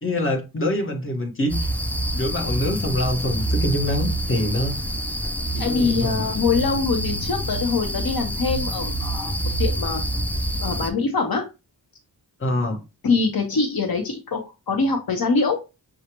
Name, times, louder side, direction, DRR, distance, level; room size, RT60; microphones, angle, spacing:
voice 1, 0.0-1.7 2.1-4.8 5.5-6.2 12.4-12.8, left 1 dB, 30° left, 1.3 m, -25 dB
sound 1, 1.5-10.9, right 1 dB, 5° left, 0.4 m, -26 dB
voice 2, 5.6-9.3 9.6-10.0 10.6-11.5 13.0-14.4 14.7-15.6, left 4 dB, 60° left, 1.1 m, -23 dB
6.4 x 2.4 x 3.0 m
wide cardioid pair, 110°, 40 cm